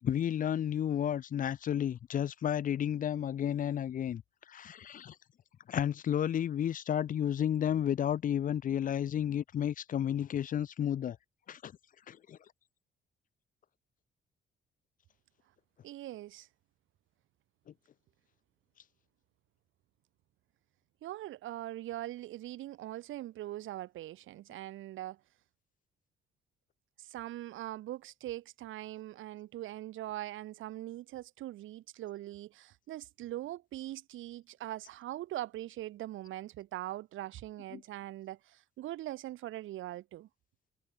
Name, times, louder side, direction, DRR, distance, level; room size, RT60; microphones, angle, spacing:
voice 1, 0.0-4.2 4.5-5.1 5.7-11.2 11.5-11.7 12.1-12.4 37.7-37.8, left 10 dB, 45° left, 0.4 m, -32 dB
voice 2, 15.8-16.5 21.0-25.2 27.0-40.3, right 14 dB, 80° right, 1.0 m, -42 dB
cardioid pair, 90°, 20 cm